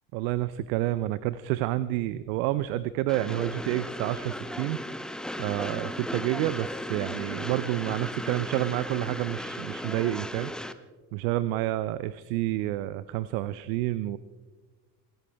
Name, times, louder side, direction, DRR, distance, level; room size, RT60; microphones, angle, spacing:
voice 1, 0.1-4.8 5.4-10.5 11.1-14.2, right 15 dB, 70° right, 16 dB, 0.6 m, -29 dB
Train, 3.1-10.7, left 1 dB, ahead, 0.8 m, -36 dB
25.0 x 13.5 x 3.4 m, 1.4 s
hypercardioid pair, 60°, 45 cm